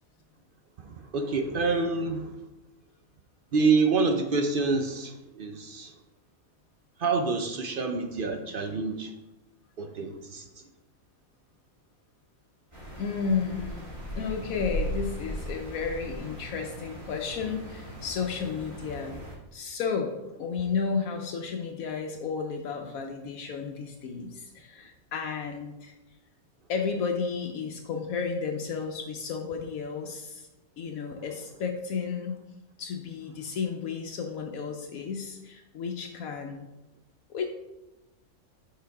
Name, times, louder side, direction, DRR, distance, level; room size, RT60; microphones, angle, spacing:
voice 1, 0.8-2.3 3.5-6.0 7.0-9.1 9.8-10.7, right 4 dB, 60° right, 5 dB, 0.5 m, -27 dB
sound 1, 12.7-19.4, equal, 20° right, 1.8 m, -38 dB
voice 2, 13.0-19.2 19.5-20.1 20.4-25.9 26.7-30.5 30.8-32.4 32.8-36.7 37.3-37.5, left 5 dB, 75° left, 3 dB, 1.1 m, -32 dB
6.6 x 4.1 x 4.7 m, 0.97 s
omnidirectional pair, 1.5 m